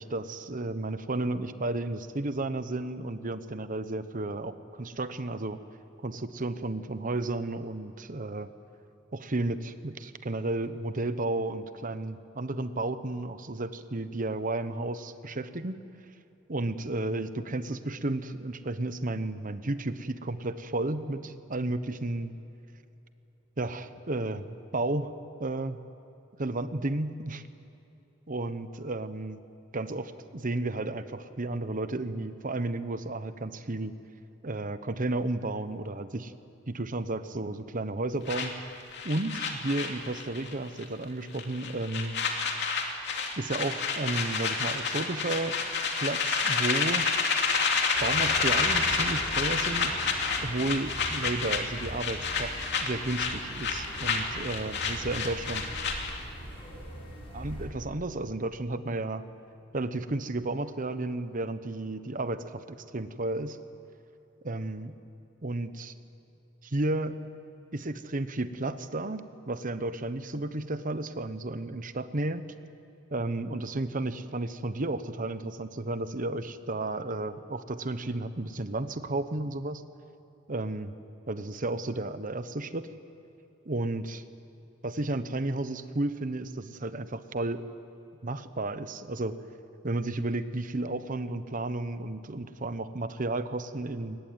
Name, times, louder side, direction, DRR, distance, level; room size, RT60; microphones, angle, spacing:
voice 1, 0.0-5.6 6.0-8.5 9.1-15.8 16.5-22.3 23.6-25.1 25.4-25.8 26.4-27.4 28.3-29.4 29.7-33.9 34.4-36.3 36.7-38.5 39.0-42.2 43.4-45.6 46.0-47.1 48.0-50.0 50.4-55.6 57.3-59.2 59.7-63.6 64.4-64.9 65.4-65.9 66.6-67.2 67.7-72.4 73.1-79.8 80.5-80.9 81.3-82.9 83.6-84.2 84.8-87.6 88.2-89.4 89.8-94.2, right 2 dB, 45° right, 11 dB, 1.0 m, -32 dB
sound 1, 38.3-40.5 40.8-41.0 41.3-56.2, left 5 dB, 60° left, 2.8 m, -29 dB
sound 2, 47.9-57.7, equal, 30° left, 6.4 m, -41 dB
23.5 x 19.5 x 9.5 m, 2.9 s
head